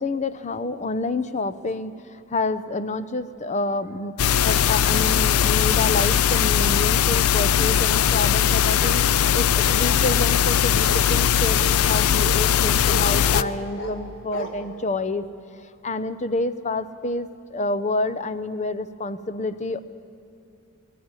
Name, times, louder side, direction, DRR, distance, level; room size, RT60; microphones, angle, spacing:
voice 1, 0.0-1.9 2.3-9.0 9.3-15.3 15.8-19.8, left 2 dB, 30° left, 13 dB, 0.6 m, -28 dB
sound 1, 4.2-13.4, left 9 dB, 80° left, 0.5 m, -20 dB
Bark, 8.8-9.0 9.6-10.2 10.9-11.1 11.6-11.7 12.2-12.4 12.8-13.0 13.3-14.0 14.3-14.5, left 1 dB, 55° left, 2.0 m, -33 dB
19.5 x 14.5 x 9.7 m, 2.6 s
head